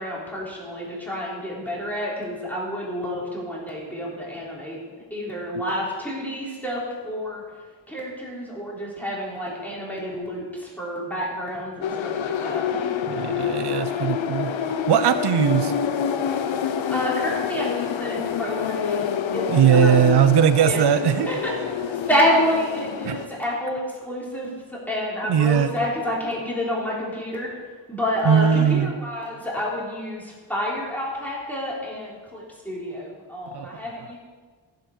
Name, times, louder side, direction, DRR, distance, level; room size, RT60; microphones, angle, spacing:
voice 1, 0.0-4.8 5.1-7.4 7.9-13.0 16.6-19.0 19.3-19.4 19.7-20.0 20.6-20.8 21.2-27.5 27.9-34.2, equal, 5° left, -5 dB, 3.5 m, -29 dB
sound 1, 11.8-23.3, left 7 dB, 75° left, 0.9 m, -27 dB
voice 2, 13.1-14.5 14.9-15.7 19.5-21.3 23.0-23.2 25.3-25.7 28.2-28.9 33.5-33.7, right 9 dB, 55° right, 11 dB, 0.6 m, -19 dB
15.0 x 7.7 x 5.4 m, 1.5 s
wide cardioid pair, 145°, 47 cm